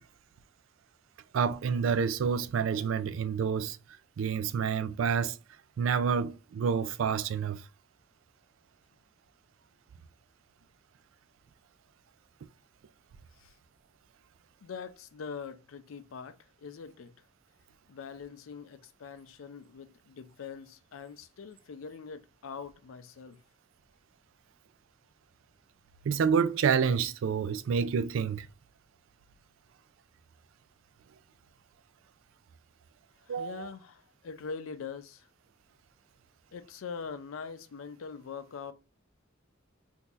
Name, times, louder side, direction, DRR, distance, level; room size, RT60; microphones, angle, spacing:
voice 1, 1.3-3.8 4.2-5.4 5.8-7.6 26.0-28.5 33.3-33.7, right 6 dB, 70° right, 0.3 m, -28 dB
voice 2, 14.6-17.1 17.9-23.4 33.3-35.3 36.5-38.7, left 5 dB, 80° left, 0.4 m, -43 dB
3.7 x 2.7 x 2.4 m
head